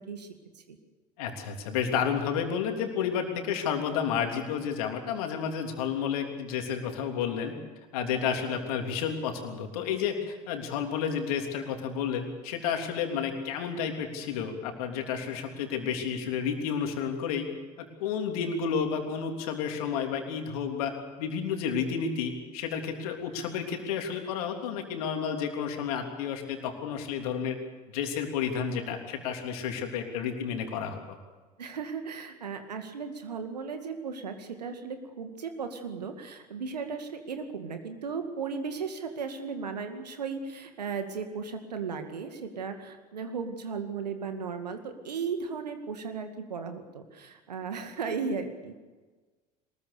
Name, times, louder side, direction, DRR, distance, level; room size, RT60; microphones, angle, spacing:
voice 1, 1.2-7.5 7.9-17.4 17.8-20.9 21.2-27.6 27.9-31.0, left 7 dB, 60° left, 4 dB, 3.3 m, -31 dB
voice 2, 31.6-48.7, right 5 dB, 75° right, 7 dB, 2.2 m, -36 dB
22.5 x 20.5 x 6.8 m, 1.3 s
figure-of-eight pair, 70°, 21 cm